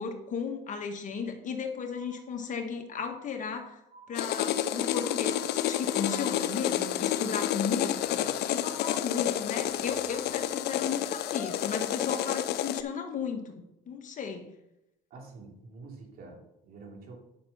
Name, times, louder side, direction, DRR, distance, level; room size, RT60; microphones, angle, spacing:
voice 1, 0.0-3.8 4.1-14.5, left 6 dB, 50° left, 4 dB, 1.6 m, -35 dB
sound 1, 1.9-2.6 2.9-3.6 3.9-4.6 4.9-5.6 5.9-6.6, right 3 dB, 25° right, 3.2 m, -54 dB
sound 2, 4.1-12.8, left 11 dB, 75° left, 0.6 m, -30 dB
voice 2, 15.1-17.2, right 3 dB, 60° right, 0 dB, 3.1 m, -47 dB
9.5 x 6.1 x 5.7 m, 0.85 s
cardioid pair, 110°, 17 cm